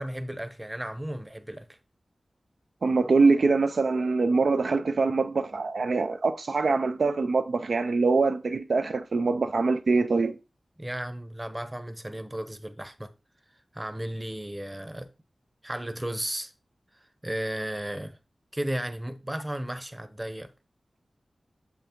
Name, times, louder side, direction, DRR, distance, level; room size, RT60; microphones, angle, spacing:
voice 1, 0.0-1.8 10.8-13.1 13.7-15.1 15.6-16.5 17.2-18.2 18.5-20.5, right 1 dB, 20° right, 0.8 m, -34 dB
voice 2, 2.8-10.3, right 4 dB, 75° right, 0.4 m, -24 dB
6.8 x 5.8 x 2.9 m
cardioid pair, 50°, 0 cm